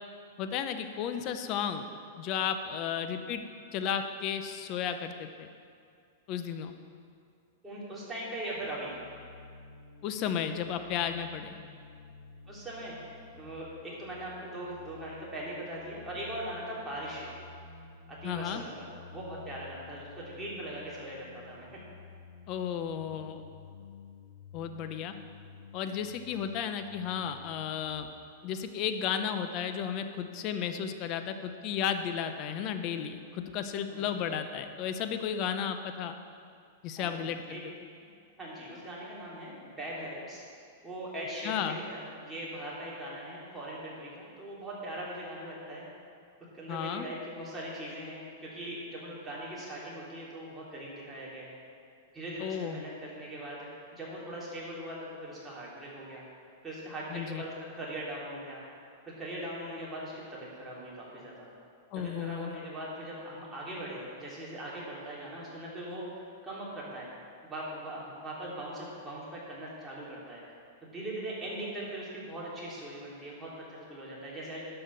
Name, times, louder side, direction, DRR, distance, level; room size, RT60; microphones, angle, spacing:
voice 1, 0.4-1.9 2.2-3.4 3.7-5.5 6.3-6.7 10.0-11.6 18.2-18.6 22.5-23.4 24.5-25.1 25.7-28.1 28.4-36.1 36.8-37.6 41.4-41.8 46.7-47.1 52.4-52.8 57.1-57.4 61.9-62.5, left 8 dB, 40° left, 8 dB, 0.8 m, -33 dB
voice 2, 7.6-8.9 12.4-17.3 18.1-21.7 33.9-34.2 37.0-37.6 38.0-38.1 38.4-40.4 40.8-45.9 46.5-51.6 52.1-56.2 56.6-58.6 59.1-61.5 61.9-67.1 67.4-70.6 70.8-74.7, right 1 dB, 10° right, -7 dB, 3.1 m, -40 dB
sound 1, 8.5-28.1, left 5 dB, 80° left, 0.9 m, -51 dB
11.0 x 5.8 x 6.9 m, 2.3 s
hypercardioid pair, 140°, 0 cm